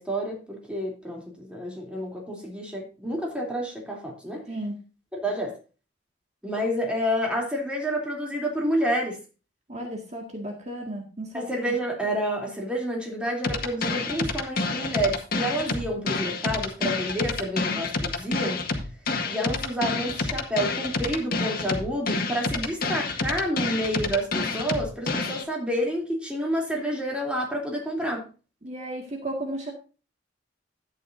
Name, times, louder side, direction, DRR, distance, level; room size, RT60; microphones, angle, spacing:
voice 1, 0.0-4.5 5.1-5.6 6.4-9.2 11.3-18.6 19.3-28.3, equal, 5° right, 3.2 m, -29 dB
voice 2, 4.5-4.8 9.7-11.7 28.6-29.7, right 1 dB, 40° right, 2.0 m, -34 dB
sound 1, 13.4-25.4, left 3 dB, 55° left, 1.7 m, -28 dB
12.5 x 9.5 x 2.7 m
head